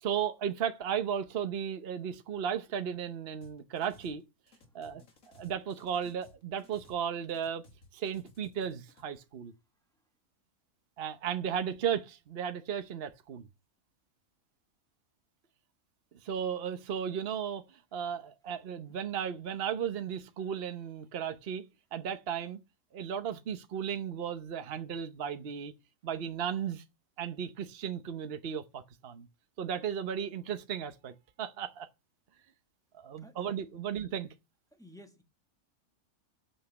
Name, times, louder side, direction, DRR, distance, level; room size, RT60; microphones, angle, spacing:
voice 1, 0.0-4.2 4.7-7.6 7.9-9.5 11.0-13.5 16.2-17.6 17.9-21.6 21.9-22.6 22.9-25.7 26.0-26.8 27.2-29.3 29.6-31.9 32.9-34.3, right 8 dB, 50° right, 1.0 m, -35 dB
sound 1, 3.4-4.2 4.5-7.0 7.3-9.0, left 2 dB, 75° left, 2.4 m, -59 dB
voice 2, 4.6-5.1 33.2-33.4 33.7-33.8 34.7-35.2, equal, 5° left, 1.2 m, -55 dB
8.9 x 7.4 x 7.0 m
omnidirectional pair, 1.5 m